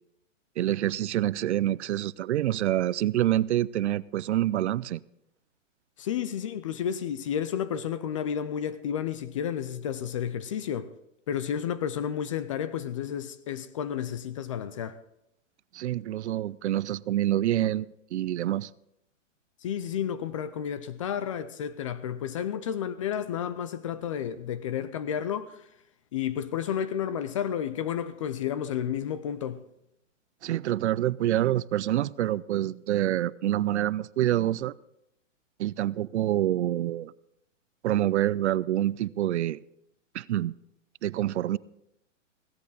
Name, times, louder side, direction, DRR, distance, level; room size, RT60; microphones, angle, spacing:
voice 1, 0.6-5.0 15.7-18.7 30.4-34.7 35.6-37.1 37.8-39.6 40.1-40.5 41.0-41.6, right 13 dB, 60° right, 0.5 m, -27 dB
voice 2, 6.0-10.9 11.3-15.0 19.6-25.7 26.1-29.6, left 9 dB, 25° left, 0.4 m, -31 dB
16.5 x 13.0 x 4.0 m
hypercardioid pair, 140°, 39 cm